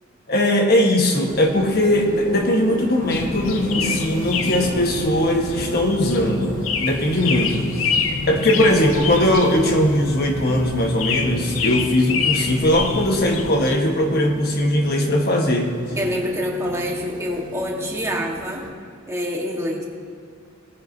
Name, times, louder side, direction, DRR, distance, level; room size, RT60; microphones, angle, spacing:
voice 1, 0.3-7.7 8.3-15.7, left 1 dB, 50° left, 2 dB, 1.3 m, -19 dB
sound 1, 1.3-18.7, right 1 dB, 40° right, 0.8 m, -36 dB
sound 2, 3.1-13.8, left 5 dB, 75° left, 0.7 m, -27 dB
voice 2, 16.0-18.6 19.1-19.8, equal, 15° right, -1 dB, 1.4 m, -26 dB
18.0 x 9.5 x 2.7 m, 2.3 s
head